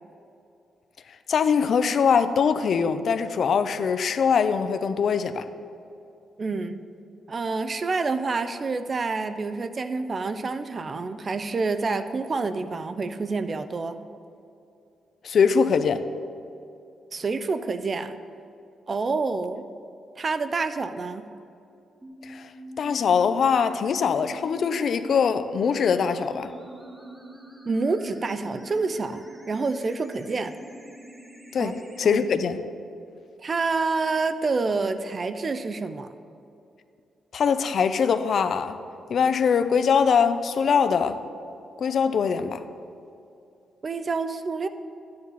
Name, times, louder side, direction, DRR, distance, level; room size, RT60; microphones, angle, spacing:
voice 1, 1.3-5.4 15.2-16.0 22.3-22.4 22.8-26.5 31.5-32.6 37.3-38.8 39.1-41.2 41.8-42.6, left 6 dB, 60° left, 11 dB, 0.6 m, -22 dB
voice 2, 6.4-6.8 7.3-14.0 17.1-18.2 18.9-19.6 20.1-21.3 27.7-30.5 31.6-31.7 32.0-32.3 33.4-36.1 43.8-44.7, right 4 dB, 35° right, 11 dB, 0.5 m, -28 dB
sound 1, 22.0-32.0, right 1 dB, 10° right, 1.2 m, -44 dB
12.0 x 9.6 x 4.1 m, 2.7 s
cardioid pair, 115°, 0 cm